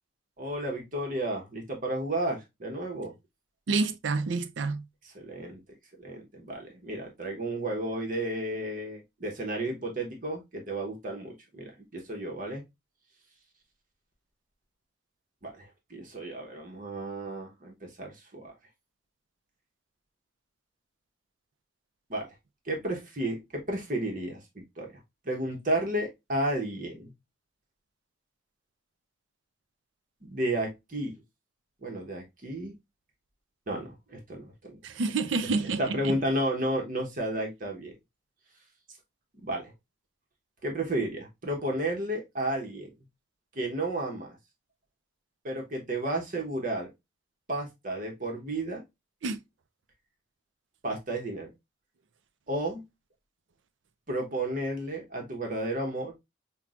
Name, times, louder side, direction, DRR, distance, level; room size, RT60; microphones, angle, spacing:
voice 1, 0.4-3.1 5.0-5.6 6.0-12.6 15.4-18.5 22.1-22.3 22.6-27.1 30.2-31.2 31.8-32.7 33.7-34.8 35.8-37.9 39.4-39.7 40.6-42.9 43.5-44.4 45.4-46.9 47.5-48.8 50.8-51.5 52.5-52.8 54.1-56.1, right 1 dB, 45° right, 0.9 m, -32 dB
voice 2, 3.7-4.8 34.8-36.2 49.2-49.4, right 4 dB, 80° right, 0.5 m, -28 dB
5.8 x 2.2 x 2.4 m
head